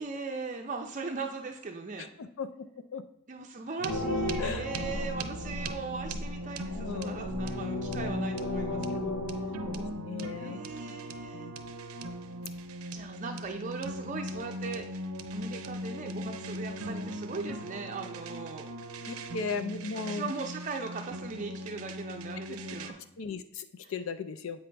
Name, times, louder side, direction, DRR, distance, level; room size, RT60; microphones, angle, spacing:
voice 1, 0.0-2.1 3.3-9.1 9.4-9.5 10.3-11.5 12.9-18.7 20.0-23.0 23.8-23.9, right 4 dB, 35° right, 3 dB, 0.5 m, -39 dB
voice 2, 2.0-2.7 2.9-3.1 4.4-4.6 6.7-7.3 8.7-8.8 9.7-10.6 11.3-11.5 19.0-20.3 23.2-24.6, left 5 dB, 65° left, 10 dB, 0.4 m, -37 dB
sound 1, 3.8-22.9, equal, 80° right, 0.6 m, -39 dB
sound 2, 3.9-9.9, left 1 dB, 90° left, 0.9 m, -35 dB
8.3 x 5.4 x 3.3 m, 0.80 s
head